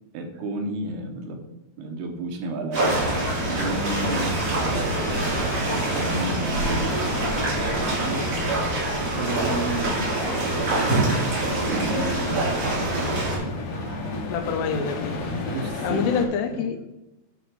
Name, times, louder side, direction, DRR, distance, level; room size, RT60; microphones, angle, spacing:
voice 1, 0.1-1.4 1.8-3.0 3.6-7.4 8.0-8.3 9.0-13.7 15.5-16.1 16.5-16.6, right 2 dB, 75° right, 4 dB, 2.8 m, -33 dB
sound 1, 2.7-13.4, right 2 dB, 45° right, 4.2 m, -25 dB
sound 2, 2.8-16.3, left 2 dB, 60° left, 1.8 m, -33 dB
Laughter, 4.1-14.4, equal, 5° right, 2.0 m, -41 dB
voice 2, 14.3-15.3 15.8-16.8, left 6 dB, 80° left, 7 dB, 2.8 m, -26 dB
11.0 x 3.8 x 5.2 m, 0.95 s
omnidirectional pair, 4.9 m